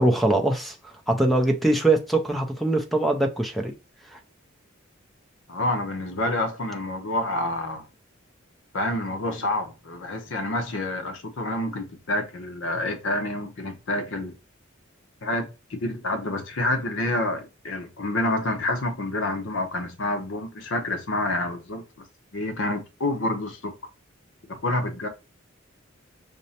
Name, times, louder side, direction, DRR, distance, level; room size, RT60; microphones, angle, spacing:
voice 1, 0.0-3.7 4.0-4.2, right 2 dB, ahead, 0.5 m, -22 dB
voice 2, 5.5-7.8 8.7-14.4 15.2-22.1 22.3-23.7 24.5-25.1, left 1 dB, 65° left, 0.7 m, -28 dB
5.1 x 2.1 x 2.8 m
head